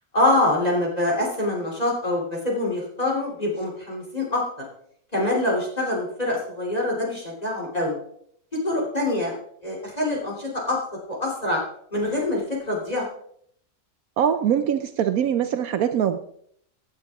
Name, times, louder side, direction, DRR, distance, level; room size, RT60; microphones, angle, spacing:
voice 1, 0.1-4.4 5.1-7.9 8.5-9.3 9.6-10.8 11.1-11.6 11.9-13.0, left 1 dB, 25° left, -3 dB, 3.2 m, -25 dB
voice 2, 14.2-16.2, right 9 dB, 75° right, 9 dB, 1.1 m, -22 dB
16.5 x 8.9 x 3.5 m, 0.66 s
omnidirectional pair, 1.6 m